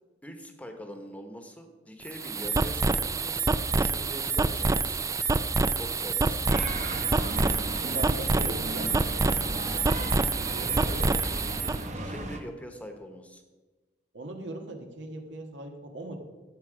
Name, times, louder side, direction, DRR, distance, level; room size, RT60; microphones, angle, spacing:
voice 1, 0.2-5.0 5.7-6.5 11.7-13.4, equal, 10° left, 5 dB, 1.0 m, -43 dB
sound 1, 2.0-11.8, right 3 dB, 20° right, 0.3 m, -27 dB
sound 2, 6.5-12.4, right 1 dB, 40° right, 1.1 m, -35 dB
voice 2, 7.7-9.0 10.5-11.1 14.1-16.2, right 1 dB, 85° right, 3 dB, 1.6 m, -39 dB
12.5 x 8.0 x 5.0 m, 1.2 s
head